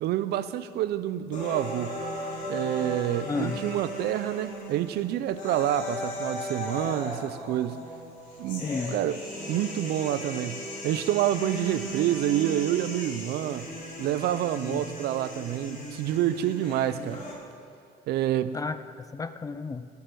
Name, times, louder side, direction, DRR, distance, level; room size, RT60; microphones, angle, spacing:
voice 1, 0.0-2.0 2.5-7.8 8.4-9.2 9.5-13.7 14.0-17.2 18.1-18.6, right 12 dB, 75° right, 0.5 m, -28 dB
sound 1, 1.3-17.3, equal, 45° left, 3.5 m, -37 dB
voice 2, 3.3-3.6 8.6-9.0 14.6-14.8 18.5-19.9, left 4 dB, 20° left, 0.5 m, -33 dB
10.0 x 8.4 x 6.2 m
cardioid pair, 110°, 17 cm